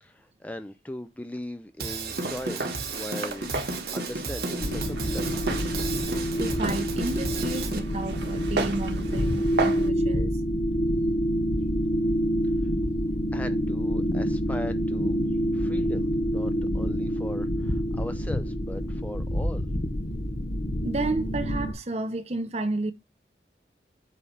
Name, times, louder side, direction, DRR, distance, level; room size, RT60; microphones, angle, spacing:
voice 1, 0.0-5.7 13.3-15.2 15.5-19.7, left 1 dB, 10° left, 0.4 m, -39 dB
Drum kit / Drum, 1.8-7.8, right 3 dB, 60° right, 1.5 m, -33 dB
Walk footsteps, 2.1-9.9, right 3 dB, 80° right, 1.4 m, -35 dB
sound 1, 4.6-21.7, equal, 55° left, 1.1 m, -27 dB
voice 2, 6.4-10.4 20.8-22.9, right 2 dB, 35° right, 0.8 m, -31 dB
8.4 x 3.2 x 5.5 m
head